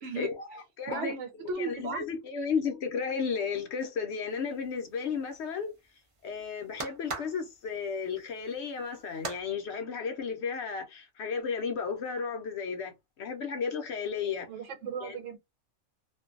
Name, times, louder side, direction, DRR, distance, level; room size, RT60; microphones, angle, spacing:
voice 1, 0.2-5.7 6.2-12.9 13.2-14.5 15.0-15.2, left 6 dB, 65° left, 0.8 m, -34 dB
voice 2, 0.9-2.0 14.5-15.4, right 4 dB, 70° right, 0.9 m, -35 dB
sound 1, 4.3-9.4, right 3 dB, 45° right, 0.4 m, -43 dB
2.5 x 2.2 x 2.4 m
omnidirectional pair, 1.4 m